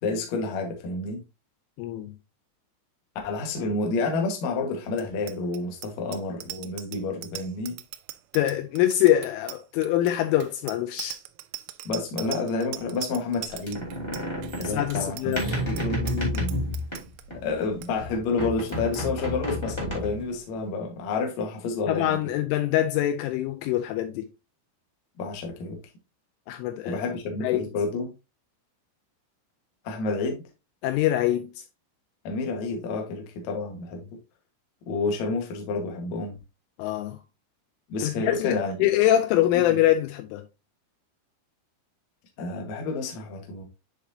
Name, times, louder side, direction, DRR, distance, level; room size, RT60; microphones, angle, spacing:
voice 1, 0.0-1.2 3.2-7.8 11.8-13.9 14.6-16.6 17.4-22.1 25.2-25.8 26.8-28.1 29.8-30.4 32.2-34.1 34.9-36.4 37.9-38.8 42.4-43.6, left 3 dB, 70° left, 1.7 m, -29 dB
voice 2, 1.8-2.1 8.3-11.2 14.6-15.6 21.9-24.3 26.5-27.0 27.4-27.6 30.8-31.6 36.8-37.2 38.0-40.4, left 13 dB, 85° left, 2.9 m, -24 dB
Bicycle bell, 4.9-17.2 17.6-17.9 18.1-18.4 18.7-19.0, right 16 dB, 85° right, 3.0 m, -41 dB
sound 1, 13.4-17.6 18.0-20.4, equal, 35° left, 0.4 m, -31 dB
10.0 x 4.0 x 2.8 m
omnidirectional pair, 6.0 m